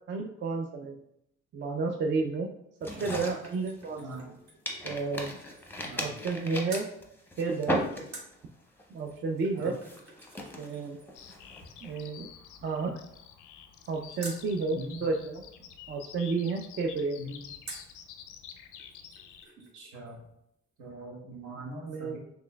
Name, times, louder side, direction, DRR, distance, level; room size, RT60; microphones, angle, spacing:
voice 1, 0.1-1.0 1.5-2.5 2.8-4.3 4.8-5.4 6.0-6.9 7.4-7.8 8.9-9.7 10.6-11.0 11.8-12.3 12.6-13.0 13.9-15.4 15.9-17.2 21.9-22.2, right 4 dB, 40° right, 2 dB, 0.4 m, -31 dB
sound 1, 2.8-4.3 4.7-8.4 8.8-9.1 9.6-12.0, left 1 dB, 5° left, 0.7 m, -37 dB
sound 2, 2.8-6.4 6.7-6.9 8.1-14.5 17.6-18.0 18.5-18.6 18.8-19.8 20.1-20.2, right 2 dB, 60° right, 1.0 m, -50 dB
voice 2, 4.0-4.3 5.9-6.2 9.5-9.8 14.7-15.1 17.2-17.4 19.7-20.2 20.8-22.2, right 1 dB, 80° right, 0 dB, 1.1 m, -42 dB
Bird vocalization bird call bird song, 11.1-19.5, left 8 dB, 90° left, 0.5 m, -49 dB
4.2 x 3.2 x 2.2 m, 0.78 s
cardioid pair, 90°, 30 cm